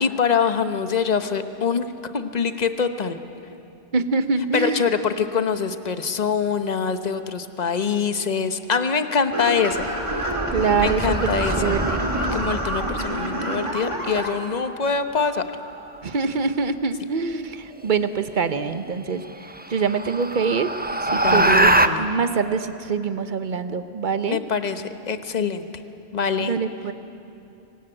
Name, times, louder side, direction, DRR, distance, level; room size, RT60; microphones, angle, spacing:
voice 1, 0.0-1.9 2.1-3.2 4.5-9.8 10.8-11.7 12.2-15.4 21.1-22.1 24.3-25.7 26.1-26.6, left 6 dB, 40° left, 9 dB, 1.1 m, -24 dB
voice 2, 3.9-4.8 10.5-11.3 11.6-12.1 16.0-19.2 19.7-20.7 21.0-21.7 22.0-24.4 26.4-26.9, right 5 dB, 45° right, 11 dB, 1.1 m, -24 dB
sound 1, 9.3-14.3, right 1 dB, 25° right, 2.6 m, -27 dB
sound 2, 9.7-13.2 15.5-16.0 18.1-18.2 18.7-18.8 19.2-21.9, right 1 dB, 10° right, 0.6 m, -24 dB
24.5 x 19.5 x 9.1 m, 2.7 s
omnidirectional pair, 1.2 m